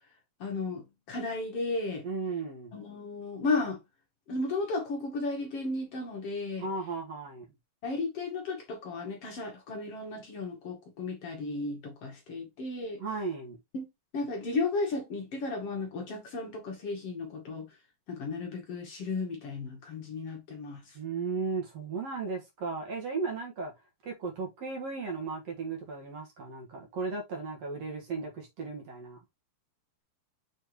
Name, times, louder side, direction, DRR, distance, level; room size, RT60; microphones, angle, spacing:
voice 1, 0.4-2.0 2.7-3.8 4.3-6.7 7.8-13.0 13.7-13.9 14.1-17.7 18.1-21.0, left 3 dB, 55° left, 1.7 m, -34 dB
voice 2, 2.0-2.7 6.6-7.5 13.0-13.6 20.9-23.7 24.0-29.2, right 4 dB, 50° right, 2.2 m, -35 dB
7.1 x 4.4 x 3.1 m
omnidirectional pair, 4.6 m